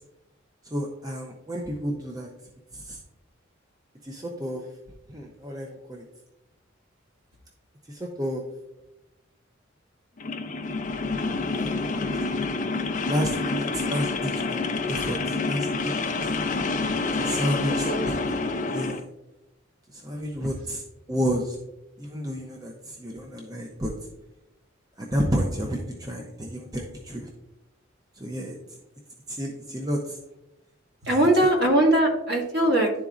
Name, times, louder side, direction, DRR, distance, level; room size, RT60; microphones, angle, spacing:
voice 1, 0.6-2.3 2.7-3.0 4.0-4.7 5.1-6.0 7.9-8.4 11.6-12.3 13.0-14.6 14.9-15.9 16.2-16.4 17.1-18.4 18.7-19.1 19.9-20.8 21.1-21.6 22.0-23.9 25.0-27.3 28.2-28.6 29.3-30.2, equal, 20° right, 0 dB, 0.6 m, -31 dB
sound 1, 10.2-19.0, left 3 dB, 40° left, 0.5 m, -28 dB
voice 2, 31.0-32.9, right 1 dB, 55° right, -1 dB, 1.6 m, -20 dB
11.0 x 4.0 x 2.4 m, 0.92 s
head